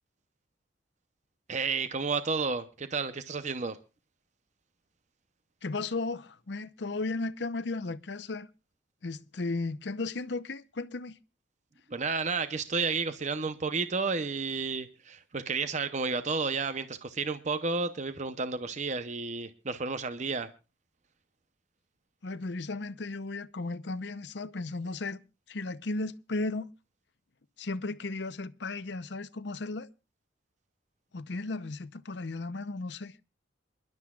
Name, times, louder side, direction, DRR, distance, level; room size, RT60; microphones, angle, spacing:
voice 1, 1.5-3.8 11.9-20.5, right 4 dB, 40° right, 0.7 m, -31 dB
voice 2, 5.6-8.5 9.0-11.2 22.2-25.2 25.5-26.7 27.6-29.9 31.1-33.1, left 3 dB, 60° left, 0.7 m, -35 dB
27.5 x 12.0 x 2.4 m
head